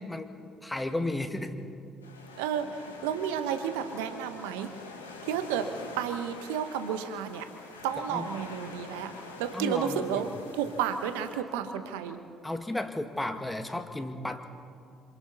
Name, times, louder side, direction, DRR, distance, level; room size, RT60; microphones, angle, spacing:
voice 1, 0.0-1.5 8.1-8.3 9.5-10.2 12.4-14.4, left 2 dB, 10° left, 7 dB, 2.0 m, -34 dB
sound 1, 2.0-11.4, left 3 dB, 85° left, 2.0 m, -46 dB
voice 2, 2.4-4.7 5.2-7.5 7.8-9.1 9.4-10.3 10.5-12.2, right 8 dB, 70° right, 8 dB, 1.2 m, -32 dB
27.5 x 27.0 x 4.1 m, 2.4 s
figure-of-eight pair, 50°, 0 cm